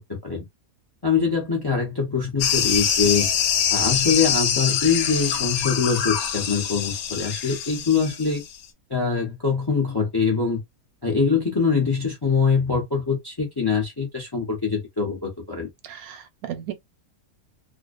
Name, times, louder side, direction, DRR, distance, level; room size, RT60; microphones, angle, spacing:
voice 1, 0.1-0.4 1.0-3.3 3.7-8.4 8.9-10.6 11.0-15.7, left 5 dB, 25° left, 0.5 m, -23 dB
sound 1, 2.4-8.6, left 8 dB, 80° left, 1.1 m, -24 dB
voice 2, 15.8-16.7, right 11 dB, 80° right, 1.0 m, -35 dB
2.5 x 2.1 x 2.4 m
omnidirectional pair, 1.5 m